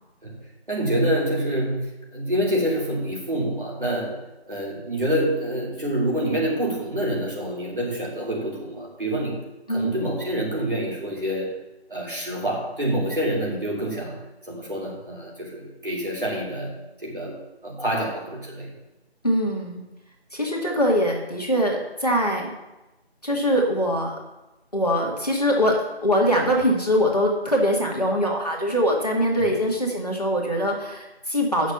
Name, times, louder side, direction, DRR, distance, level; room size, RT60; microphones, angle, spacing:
voice 1, 0.7-9.4 9.7-11.6 11.9-14.1 14.5-18.7 29.4-29.6, right 1 dB, 50° right, -4 dB, 3.3 m, -27 dB
voice 2, 19.2-19.8 20.3-22.5 23.2-24.1 24.7-31.7, equal, 35° left, -2 dB, 1.7 m, -22 dB
8.6 x 6.4 x 7.1 m, 1.0 s
figure-of-eight pair, 175°, 33 cm